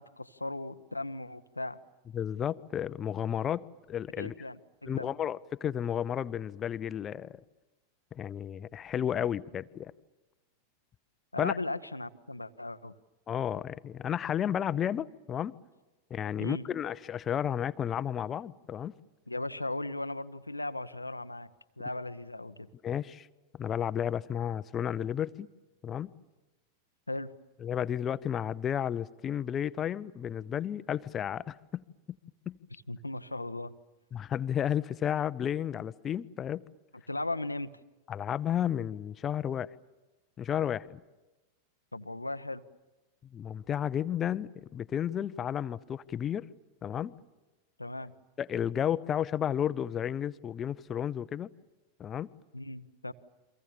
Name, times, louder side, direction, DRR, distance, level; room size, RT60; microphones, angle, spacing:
voice 1, 0.0-1.8 4.2-5.1 11.3-12.9 16.4-16.7 19.3-21.5 21.8-22.7 27.1-27.3 32.9-33.7 37.1-37.7 41.9-42.6 47.8-48.1 52.5-53.1, left 2 dB, 85° left, 0.9 m, -37 dB
voice 2, 2.1-4.5 4.9-7.4 8.1-9.9 11.4-11.6 13.3-15.6 16.1-18.9 22.8-23.3 23.6-25.5 25.8-26.1 27.6-31.8 32.5-32.6 34.1-36.6 38.1-39.7 40.4-41.0 43.3-46.4 46.8-47.2 48.4-51.5 52.0-52.3, left 9 dB, 25° left, 0.8 m, -32 dB
30.0 x 24.5 x 7.3 m
figure-of-eight pair, 90°, 0 cm